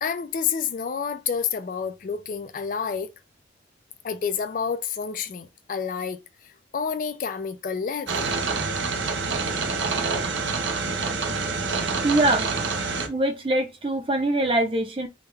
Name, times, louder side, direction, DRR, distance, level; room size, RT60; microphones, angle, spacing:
voice 1, 0.0-3.1 4.0-8.3, left 6 dB, 45° left, 0.3 m, -29 dB
sound 1, 8.1-13.1, right 4 dB, 85° right, 0.7 m, -27 dB
voice 2, 12.0-12.6 13.0-15.1, right 1 dB, 30° right, 0.6 m, -23 dB
3.5 x 2.2 x 3.2 m
head